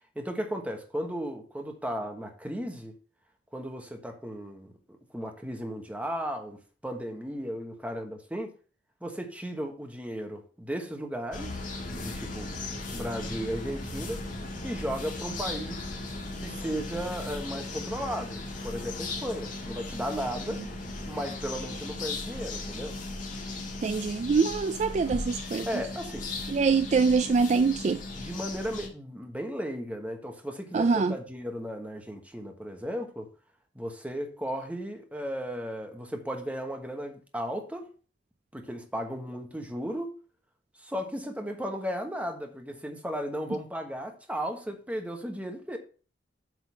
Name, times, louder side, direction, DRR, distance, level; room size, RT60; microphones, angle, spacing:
voice 1, 0.1-3.0 3.5-8.5 9.0-11.5 11.9-12.5 12.9-14.2 14.6-15.9 16.4-20.6 21.0-23.0 25.7-26.3 27.0-27.1 28.2-33.3 33.7-37.9 38.5-40.2 40.8-45.8, equal, 10° right, 1.2 m, -35 dB
sound 1, 11.3-28.9, left 2 dB, 45° left, 1.9 m, -37 dB
voice 2, 23.8-25.7 26.5-28.0 30.7-31.1, right 4 dB, 40° right, 0.3 m, -24 dB
8.0 x 3.9 x 6.2 m
head